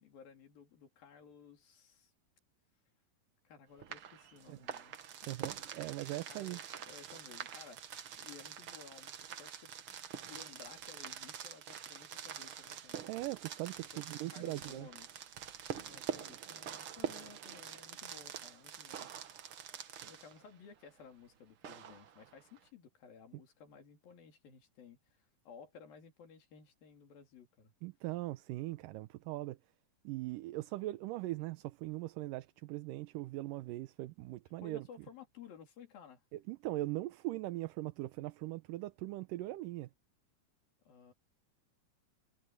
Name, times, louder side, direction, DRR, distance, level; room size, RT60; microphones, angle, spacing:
voice 1, 0.0-2.1 3.4-5.0 5.2-10.0 10.2-13.1 13.9-14.0 14.3-15.2 15.6-19.1 20.0-27.7 34.6-36.2 40.8-41.1, left 6 dB, 80° left, 4.9 m, -56 dB
sound 1, 3.8-20.5 21.6-22.6, right 8 dB, 60° right, 1.4 m, -46 dB
voice 2, 5.3-6.6 13.1-14.9 27.8-29.6 30.0-34.9 36.3-39.9, right 17 dB, 75° right, 2.2 m, -40 dB
omnidirectional pair, 4.1 m